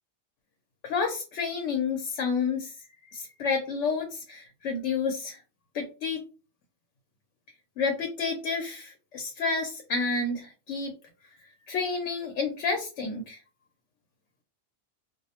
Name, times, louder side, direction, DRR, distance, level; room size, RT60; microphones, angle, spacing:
voice 1, 0.8-2.7 3.1-5.4 5.7-6.2 7.8-10.9 11.7-13.4, left 4 dB, 80° left, 4 dB, 0.9 m, -30 dB
2.4 x 2.0 x 2.7 m, 0.33 s
omnidirectional pair, 1.2 m